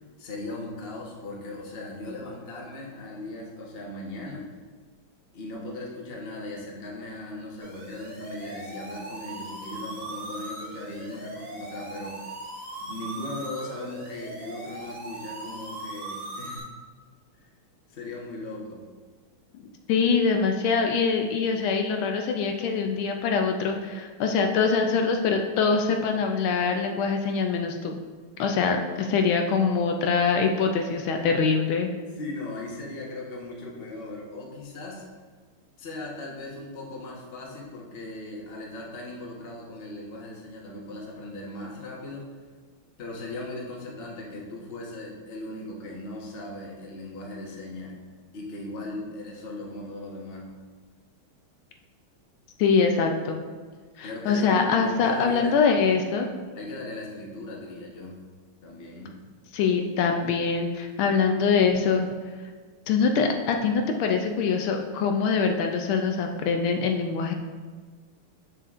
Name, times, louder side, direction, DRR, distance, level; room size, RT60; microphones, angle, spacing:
voice 1, 0.2-4.5 5.3-12.2 12.8-16.7 17.4-17.5 17.9-18.8 32.2-35.0 35.8-42.4 43.0-48.0 48.3-50.5 54.0-55.7 56.5-58.2 58.6-59.1, left 2 dB, 35° left, -2 dB, 1.0 m, -38 dB
sound 1, 7.6-16.6, right 1 dB, 40° right, 1.7 m, -39 dB
voice 2, 19.5-28.0 28.4-31.9 52.6-53.4 54.0-56.3 59.5-62.1 62.9-67.3, left 5 dB, 80° left, 4 dB, 1.4 m, -24 dB
7.5 x 6.6 x 2.5 m, 1.5 s
omnidirectional pair, 2.3 m